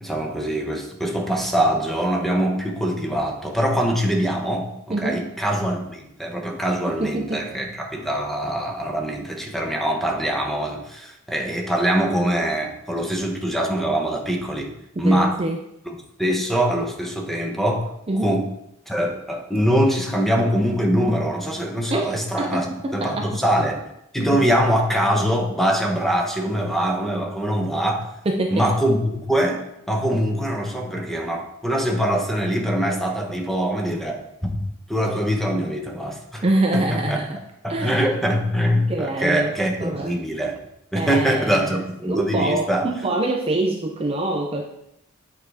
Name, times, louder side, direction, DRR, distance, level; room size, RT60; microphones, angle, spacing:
voice 1, 0.0-14.7 15.0-15.4 16.2-18.5 18.9-22.7 22.9-23.8 24.1-28.1 28.5-36.4 36.7-37.2 37.6-40.6 40.9-42.9, equal, ahead, 1 dB, 0.9 m, -23 dB
voice 2, 4.9-5.2 6.9-7.5 15.0-15.6 18.1-18.4 21.9-22.1 22.4-23.3 28.3-28.7 36.4-37.4 37.7-38.0 38.9-40.2 40.9-44.6, right 2 dB, 30° right, 2 dB, 0.5 m, -25 dB
8.6 x 4.8 x 3.4 m, 0.80 s
head